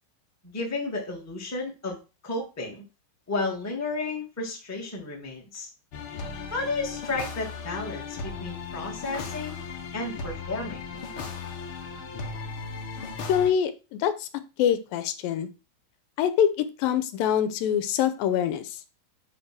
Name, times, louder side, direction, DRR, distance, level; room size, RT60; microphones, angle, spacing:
voice 1, 0.4-2.8 3.3-5.7 6.5-9.6 9.9-10.8, left 3 dB, 5° left, 0 dB, 1.2 m, -32 dB
sound 1, 5.9-13.5, left 5 dB, 60° left, 1.4 m, -36 dB
voice 2, 13.0-14.3 14.6-15.5 16.2-16.5 16.8-18.7, left 9 dB, 85° left, 10 dB, 2.5 m, -25 dB
10.0 x 3.4 x 6.2 m, 0.30 s
omnidirectional pair, 4.1 m